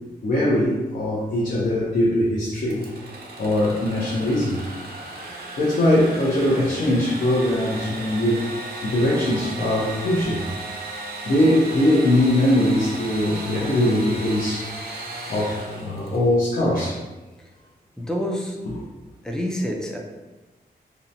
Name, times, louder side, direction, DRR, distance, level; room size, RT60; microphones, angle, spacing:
voice 1, 0.2-2.8 3.4-4.6 5.6-8.4 8.8-10.4 11.3-14.7 15.3-17.0, left 1 dB, 55° left, -6 dB, 0.6 m, -21 dB
Engine / Sawing, 2.7-16.4, right 2 dB, 65° right, 0.5 m, -36 dB
voice 2, 18.0-18.6 19.2-20.0, equal, 5° left, -1 dB, 0.4 m, -27 dB
2.7 x 2.1 x 2.6 m, 1.1 s
wide cardioid pair, 100°, 17 cm